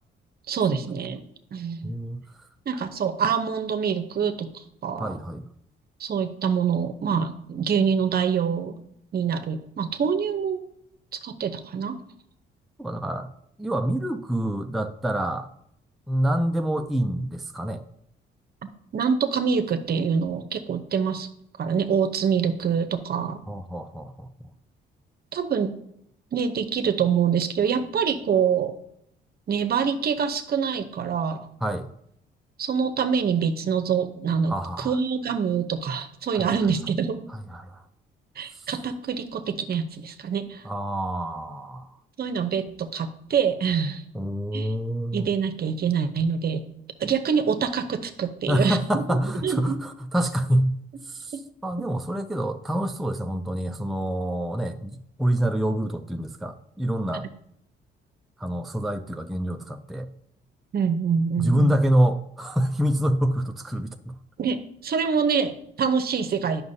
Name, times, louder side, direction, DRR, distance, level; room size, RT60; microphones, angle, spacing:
voice 1, 0.5-1.2 1.5-1.9 2.7-5.2 6.0-8.8 9.1-10.6 11.2-12.0 18.9-21.3 21.6-23.4 25.3-25.7 26.3-28.7 29.5-31.4 32.6-37.2 38.4-40.6 42.2-44.0 44.5-44.7 45.1-46.6 47.0-48.8 49.1-49.2 49.4-49.8 60.7-61.7 64.4-66.6, right 6 dB, 50° right, 9 dB, 0.8 m, -25 dB
voice 2, 1.8-2.2 5.0-5.5 12.8-13.3 13.6-15.5 16.1-17.8 23.5-24.3 31.6-31.9 34.5-35.0 36.3-36.4 37.5-37.8 40.6-41.9 44.1-45.3 48.5-50.7 51.1-57.3 58.4-60.1 61.4-64.2, equal, ahead, 6 dB, 0.4 m, -26 dB
9.3 x 5.9 x 2.7 m, 0.74 s
cardioid pair, 90°, 20 cm